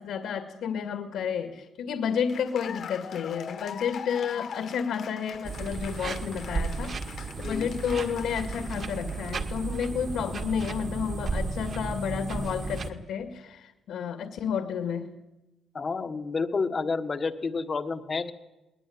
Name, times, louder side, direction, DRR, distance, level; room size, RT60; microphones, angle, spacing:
voice 1, 0.0-7.0 7.4-15.1, left 7 dB, 65° left, 6 dB, 2.2 m, -31 dB
Cheering / Applause, 2.0-9.6, left 7 dB, 45° left, 1.7 m, -43 dB
sound 1, 5.4-12.9, right 3 dB, 35° right, 1.9 m, -34 dB
voice 2, 7.4-7.7 15.7-18.3, left 4 dB, 25° left, 10 dB, 1.4 m, -30 dB
20.5 x 20.5 x 9.6 m, 0.98 s
cardioid pair, 175°, 0 cm